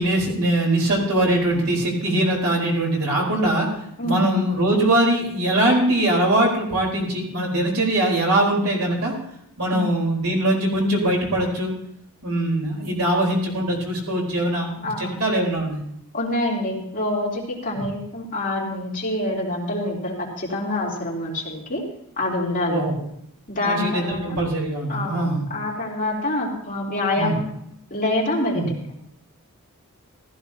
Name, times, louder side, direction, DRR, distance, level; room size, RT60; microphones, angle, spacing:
voice 1, 0.0-3.7 4.0-9.1 9.6-11.7 12.2-15.8 17.7-17.8 22.7-23.0 23.6-25.5 27.2-27.4 28.5-28.7, right 1 dB, 70° right, -2 dB, 4.2 m, -22 dB
voice 2, 14.8-15.2 16.1-21.8 22.2-22.8 23.5-24.4 24.9-27.5 27.9-28.8, left 1 dB, 40° left, -4 dB, 3.5 m, -26 dB
15.5 x 14.5 x 2.9 m, 0.73 s
head